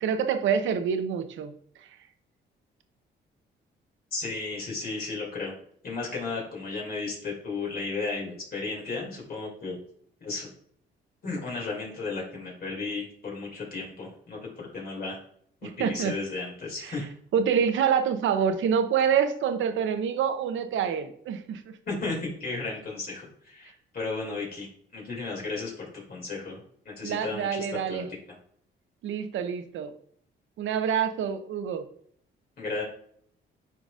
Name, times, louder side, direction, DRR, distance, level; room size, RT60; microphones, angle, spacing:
voice 1, 0.0-1.5 1.8-2.0 15.6-16.1 16.8-16.9 17.3-21.8 27.0-28.1 29.0-29.9 30.6-31.9, right 7 dB, 75° right, 9 dB, 0.8 m, -27 dB
voice 2, 4.1-5.5 5.8-9.8 10.2-10.5 11.2-15.2 15.6-17.1 21.9-28.0 32.6-32.8, left 3 dB, 50° left, -2 dB, 2.6 m, -34 dB
10.0 x 3.9 x 2.5 m, 0.63 s
cardioid pair, 90°, 20 cm